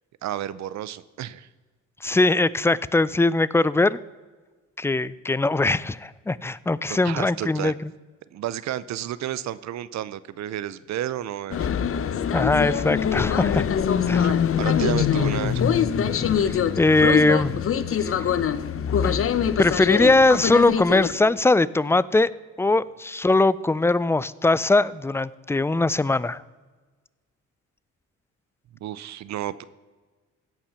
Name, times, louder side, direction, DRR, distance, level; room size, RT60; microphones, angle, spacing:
voice 1, 0.2-1.5 6.9-7.7 8.3-11.7 14.1-15.6 28.8-29.6, right 12 dB, 65° right, 17 dB, 0.6 m, -31 dB
voice 2, 2.0-4.0 4.8-7.7 12.3-13.7 14.1-14.3 16.4-17.6 18.0-18.1 19.0-19.2 19.6-22.3 22.6-26.4, left 2 dB, 10° left, 19 dB, 0.3 m, -21 dB
sound 1, 11.5-21.1, left 8 dB, 45° left, 0.8 m, -23 dB
16.5 x 5.8 x 5.7 m, 1.3 s
cardioid pair, 90°, 30 cm